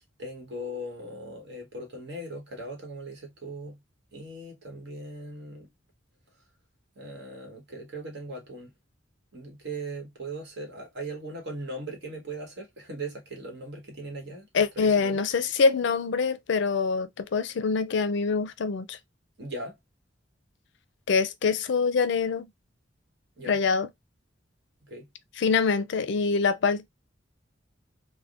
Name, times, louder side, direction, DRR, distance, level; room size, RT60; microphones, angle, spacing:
voice 1, 0.0-3.8 4.1-5.7 6.9-8.7 9.3-15.3 19.4-19.7 23.4-23.6 24.8-25.1, right 1 dB, 65° right, 1.3 m, -39 dB
voice 2, 14.5-19.0 21.1-22.5 23.5-23.9 25.4-26.9, left 5 dB, 65° left, 0.4 m, -25 dB
3.5 x 2.1 x 2.4 m
head